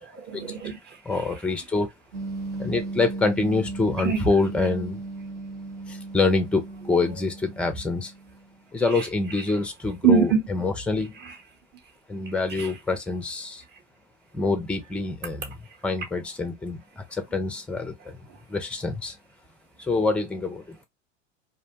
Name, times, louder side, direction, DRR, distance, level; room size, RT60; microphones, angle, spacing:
voice 1, 0.0-1.4 4.0-4.3 8.9-9.1 10.0-10.4 11.2-11.4 12.3-12.7, right 6 dB, 25° right, 0.9 m, -25 dB
voice 2, 1.1-1.9 2.6-5.0 5.9-8.1 8.7-11.2 12.1-13.6 14.3-15.5 15.8-18.2 18.5-19.2 19.8-20.9, left 3 dB, 5° left, 0.4 m, -26 dB
sound 1, 2.1-8.5, right 3 dB, 65° right, 1.1 m, -36 dB
2.6 x 2.2 x 2.7 m
hypercardioid pair, 95°, 37 cm